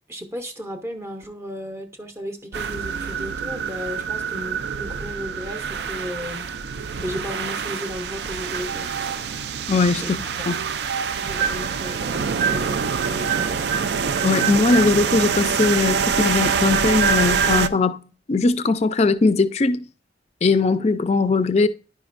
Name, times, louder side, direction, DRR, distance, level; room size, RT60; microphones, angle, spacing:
voice 1, 0.1-6.5 7.0-8.9 10.0-10.1 11.2-13.6, equal, 15° right, 0.6 m, -34 dB
sound 1, 2.5-17.7, right 6 dB, 65° right, 0.4 m, -25 dB
voice 2, 9.7-10.6 14.2-19.8 20.4-21.7, left 3 dB, 35° left, 0.4 m, -20 dB
10.0 x 5.1 x 2.5 m
head